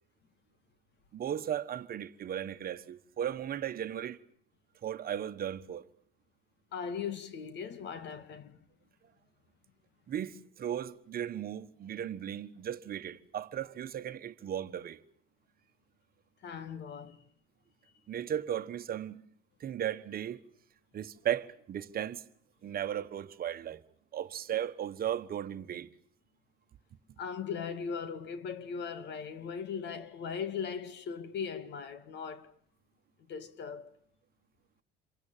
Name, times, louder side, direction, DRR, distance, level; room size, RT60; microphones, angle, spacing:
voice 1, 1.1-4.2 4.8-5.9 10.1-15.0 18.1-19.3 19.6-20.4 20.9-22.2 22.6-23.8 24.1-25.9, right 10 dB, 45° right, 1.3 m, -36 dB
voice 2, 6.7-8.6 16.4-17.2 27.2-32.5 33.3-34.0, left 6 dB, 60° left, 2.2 m, -39 dB
28.0 x 23.5 x 7.5 m
cardioid pair, 100°, 21 cm